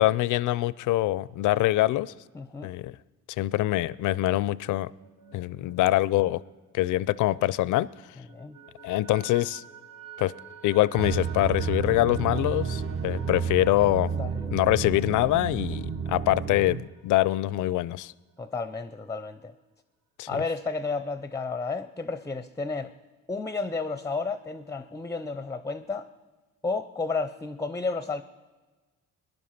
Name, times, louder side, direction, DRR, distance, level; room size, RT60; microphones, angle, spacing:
voice 1, 0.0-2.1 2.6-3.0 3.4-4.9 5.3-6.4 6.7-7.9 8.8-9.6 10.2-10.3 10.6-14.1 14.5-18.1 20.2-20.3, left 16 dB, 80° left, 0.5 m, -24 dB
voice 2, 2.3-2.7 8.3-8.6 14.1-14.6 18.4-19.5 20.3-22.9 23.3-26.1 26.6-28.2, left 4 dB, 10° left, 0.5 m, -32 dB
sound 1, 5.0-7.7 8.0-17.4, right 6 dB, 60° right, 2.2 m, -50 dB
sound 2, 11.0-16.8, right 6 dB, 45° right, 1.0 m, -31 dB
18.5 x 11.0 x 5.8 m
cardioid pair, 90°, 30 cm